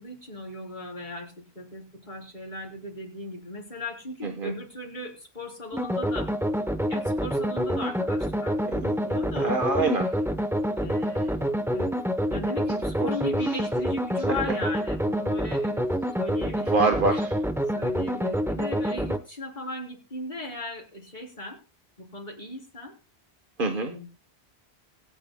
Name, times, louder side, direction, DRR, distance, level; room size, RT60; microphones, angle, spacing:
voice 1, 0.0-6.3 6.9-9.6 10.8-11.9 12.3-15.9 16.2-16.7 17.7-21.6 22.0-22.9 23.8-24.1, left 2 dB, 45° left, -1 dB, 3.7 m, -37 dB
voice 2, 4.2-4.5 8.7-10.1 13.0-13.1 13.4-13.6 16.6-17.3 23.6-23.9, right 3 dB, 55° right, 4 dB, 1.3 m, -26 dB
sound 1, 5.7-19.2, equal, 5° right, 0.7 m, -27 dB
25.0 x 9.0 x 2.2 m, 0.35 s
omnidirectional pair, 1.1 m